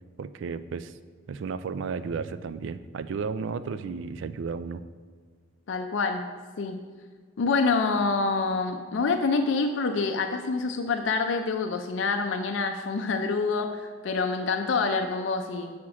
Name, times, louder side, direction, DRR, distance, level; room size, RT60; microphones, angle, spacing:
voice 1, 0.2-1.0 1.3-4.8, right 5 dB, 75° right, 13 dB, 0.3 m, -33 dB
voice 2, 5.7-6.8 7.4-15.8, left 4 dB, 75° left, 5 dB, 0.4 m, -27 dB
6.2 x 4.3 x 5.9 m, 1.5 s
head